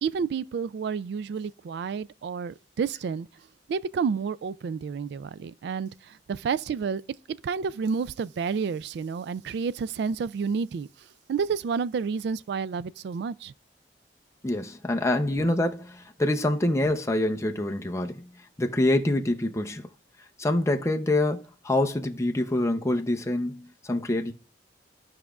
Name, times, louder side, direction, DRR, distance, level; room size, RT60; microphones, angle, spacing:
voice 1, 0.0-3.3 3.7-7.0 7.4-10.9 11.3-13.5, right 6 dB, 65° right, 0.3 m, -30 dB
voice 2, 14.4-18.3 18.6-19.9 20.4-24.3, left 1 dB, 15° left, 0.6 m, -26 dB
14.5 x 4.9 x 2.3 m
head